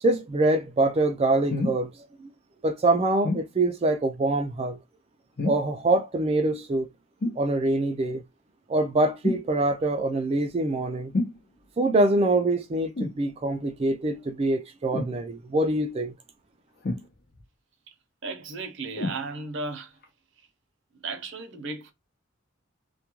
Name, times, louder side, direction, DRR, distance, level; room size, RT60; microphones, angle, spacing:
voice 1, 0.0-1.9 2.2-2.3 2.6-4.8 5.4-6.9 7.4-8.2 8.7-11.1 11.8-16.1, right 2 dB, 30° right, 0.3 m, -24 dB
sound 1, 1.5-1.8 3.2-3.5 5.4-5.8 7.2-7.5 9.2-9.5 11.1-11.4 13.0-13.2 14.9-15.2 16.8-17.4 19.0-19.2 20.0-20.1, left 2 dB, 50° left, 0.6 m, -28 dB
voice 2, 18.2-19.9 21.0-21.9, right 3 dB, 60° right, 0.6 m, -35 dB
2.3 x 2.2 x 2.9 m
head